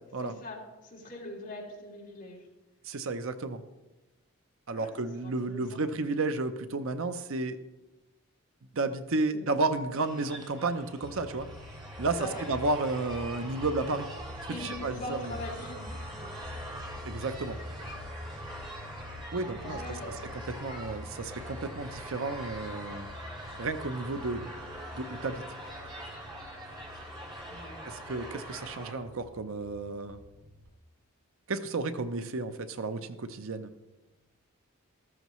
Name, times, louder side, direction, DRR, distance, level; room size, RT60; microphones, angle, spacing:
voice 1, 0.2-2.5 4.7-4.9 5.2-5.8 9.3-9.5 12.1-12.5 14.5-16.3 19.4-20.2 27.5-27.9, left 1 dB, 40° left, -5 dB, 3.4 m, -42 dB
voice 2, 2.8-3.6 4.7-7.6 8.8-11.5 12.0-12.2 12.5-14.1 14.4-15.3 17.0-17.6 19.3-19.8 20.3-23.1 23.6-24.5 24.9-25.4 27.8-30.2 31.5-33.7, right 3 dB, 65° right, 10 dB, 0.7 m, -32 dB
sound 1, 10.0-28.9, right 1 dB, 20° right, 2.1 m, -44 dB
sound 2, 11.0-30.7, left 1 dB, 85° right, 3.4 m, -46 dB
14.0 x 13.5 x 3.1 m, 1.1 s
head